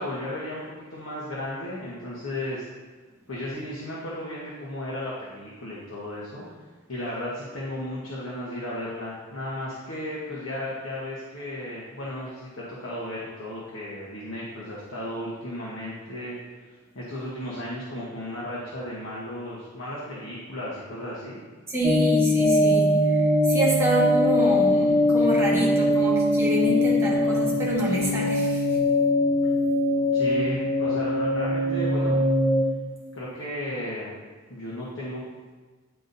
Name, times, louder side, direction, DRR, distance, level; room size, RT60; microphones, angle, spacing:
voice 1, 0.0-2.6 3.3-6.4 6.9-16.3 16.9-21.4 30.1-32.3 33.1-34.1 34.5-35.2, left 1 dB, 75° left, -7 dB, 1.1 m, -34 dB
voice 2, 21.7-28.9, right 1 dB, 15° right, -5 dB, 1.3 m, -27 dB
sound 1, 21.8-32.6, left 1 dB, 20° left, 0.9 m, -22 dB
9.9 x 3.9 x 2.7 m, 1.4 s
head